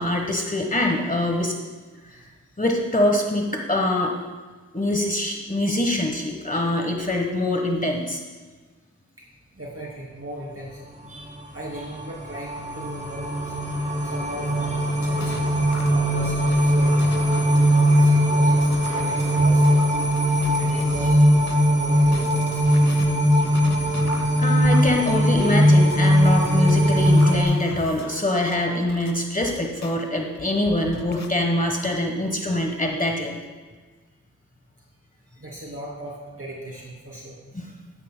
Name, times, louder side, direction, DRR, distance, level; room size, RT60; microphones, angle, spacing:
voice 1, 0.0-1.5 2.0-2.3 2.6-4.2 4.7-8.2 24.4-33.3 37.5-37.7, left 1 dB, 25° left, 2 dB, 1.2 m, -24 dB
voice 2, 9.5-10.8 11.1-13.5 14.0-15.3 15.9-17.1 17.7-19.9 20.6-21.2 21.8-22.6 35.4-37.4, right 1 dB, 45° right, -3 dB, 2.9 m, -37 dB
sound 1, 11.2-27.4, equal, 25° right, 2.4 m, -20 dB
sound 2, 14.7-21.6 22.0-29.9 30.4-31.3, left 3 dB, 60° left, 1.0 m, -39 dB
12.5 x 11.5 x 2.2 m, 1.4 s
cardioid pair, 45°, 31 cm